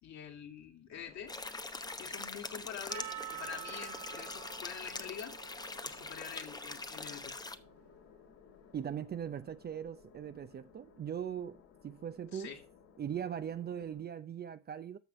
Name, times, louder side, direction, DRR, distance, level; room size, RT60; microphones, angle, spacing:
voice 1, 0.0-1.4 1.9-5.4 5.8-7.4 12.3-12.6, left 8 dB, 45° left, 2.4 m, -46 dB
sound 1, 0.9-14.0, left 5 dB, 60° left, 3.0 m, -59 dB
sound 2, 1.3-7.6, left 3 dB, 10° left, 0.8 m, -43 dB
Percussion, 2.9-7.4, right 13 dB, 45° right, 1.1 m, -48 dB
voice 2, 8.7-12.5 13.0-15.0, right 9 dB, 25° right, 0.6 m, -40 dB
14.0 x 5.8 x 3.1 m
hypercardioid pair, 75°, 37 cm